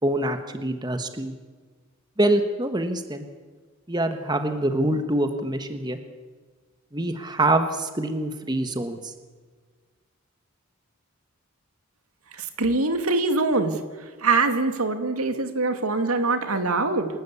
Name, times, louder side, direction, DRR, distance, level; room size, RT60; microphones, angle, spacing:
voice 1, 0.0-1.3 2.2-3.3 3.9-6.0 6.9-9.1, right 1 dB, 20° right, 7 dB, 1.4 m, -25 dB
voice 2, 12.6-13.7 14.2-17.1, right 3 dB, 90° right, 7 dB, 2.3 m, -23 dB
28.0 x 13.0 x 8.4 m, 1.5 s
head